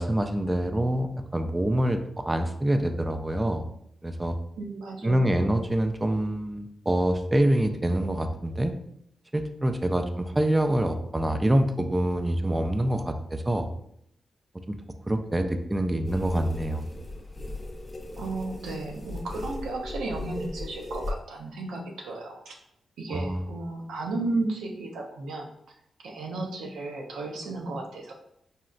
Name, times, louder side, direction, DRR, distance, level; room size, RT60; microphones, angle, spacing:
voice 1, 0.0-3.7 4.0-4.3 5.0-8.7 9.3-13.7 14.7-14.8 15.1-16.9 23.1-23.4, right 1 dB, 20° right, 6 dB, 0.3 m, -26 dB
voice 2, 4.6-5.5 18.2-22.6 23.0-25.5 26.0-28.1, right 2 dB, 90° right, 1 dB, 0.5 m, -34 dB
sound 1, 16.0-21.1, left 2 dB, 35° left, 0.6 m, -37 dB
3.9 x 2.1 x 2.4 m, 0.72 s
cardioid pair, 55°, 0 cm